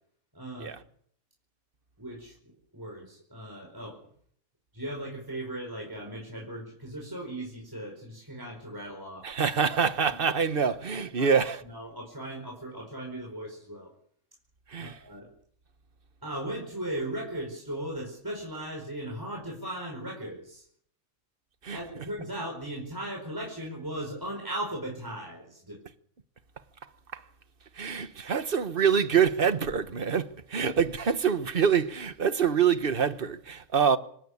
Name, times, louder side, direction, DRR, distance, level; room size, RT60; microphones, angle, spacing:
voice 1, 0.3-0.8 2.0-2.4 2.7-4.0 4.7-9.3 11.2-11.4 11.6-13.9 14.8-15.3 16.2-20.7 21.7-25.8, right 1 dB, 15° right, 4.8 m, -37 dB
voice 2, 9.2-11.6 14.7-15.0 21.6-21.8 27.1-27.2 27.7-34.0, right 7 dB, 45° right, 1.4 m, -25 dB
26.0 x 14.0 x 8.5 m
omnidirectional pair, 1.3 m